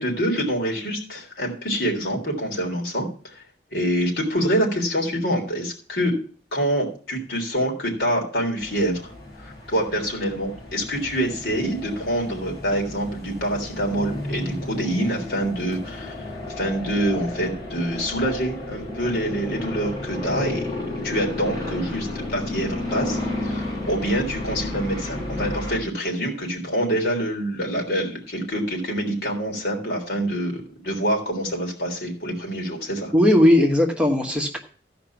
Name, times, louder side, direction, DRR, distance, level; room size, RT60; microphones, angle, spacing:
voice 1, 0.0-3.4 3.7-6.2 6.5-9.1 9.4-16.3 16.6-33.1, equal, 70° left, 0 dB, 3.5 m, -26 dB
sound 1, 8.6-25.8, left 1 dB, 20° left, 7.1 m, -32 dB
voice 2, 33.1-34.6, left 1 dB, 5° right, 1 dB, 1.1 m, -17 dB
15.0 x 5.2 x 5.8 m, 0.43 s
head